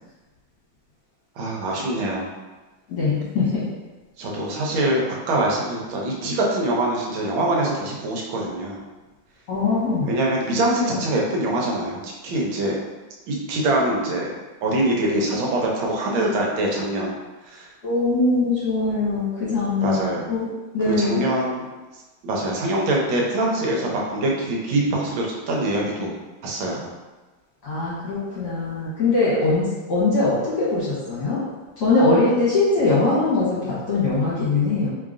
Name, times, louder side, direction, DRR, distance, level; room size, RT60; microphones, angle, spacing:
voice 1, 1.4-2.3 4.2-8.8 10.1-12.8 13.3-14.3 14.6-17.2 17.5-17.7 19.8-20.2 20.8-21.6 22.2-26.1 26.4-26.8, right 1 dB, 80° right, -2 dB, 1.5 m, -24 dB
voice 2, 2.9-3.6 9.5-10.1 10.5-10.6 10.9-11.0 17.8-20.0 20.3-20.5 20.7-21.2 27.6-31.4 31.8-34.9, left 3 dB, 60° left, -9 dB, 1.4 m, -21 dB
3.7 x 3.4 x 2.5 m, 1.2 s
omnidirectional pair, 2.2 m